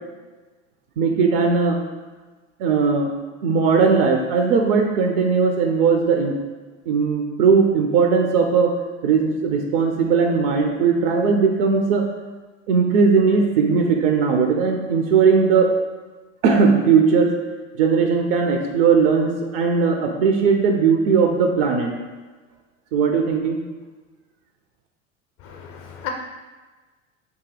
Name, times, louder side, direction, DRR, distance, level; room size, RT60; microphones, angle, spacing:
voice 1, 1.0-1.8 2.6-3.1 3.4-6.3 6.9-8.7 9.0-12.0 12.7-15.7 16.4-17.3 17.8-21.9 22.9-23.6, right 5 dB, 45° right, 3 dB, 0.5 m, -18 dB
voice 2, 25.4-26.1, left 10 dB, 35° left, 3 dB, 0.5 m, -34 dB
2.8 x 2.6 x 3.8 m, 1.3 s
figure-of-eight pair, 75°, 38 cm